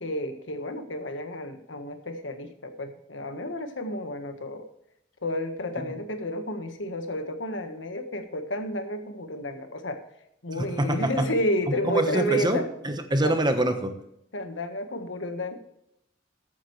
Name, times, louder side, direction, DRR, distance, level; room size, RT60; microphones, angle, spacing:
voice 1, 0.0-4.7 5.2-10.0 10.4-12.7 13.2-13.3 14.3-15.6, equal, 75° left, 7 dB, 1.5 m, -31 dB
voice 2, 10.6-11.3 11.9-14.0, right 1 dB, 25° right, 7 dB, 1.2 m, -25 dB
13.5 x 9.2 x 3.2 m, 0.80 s
head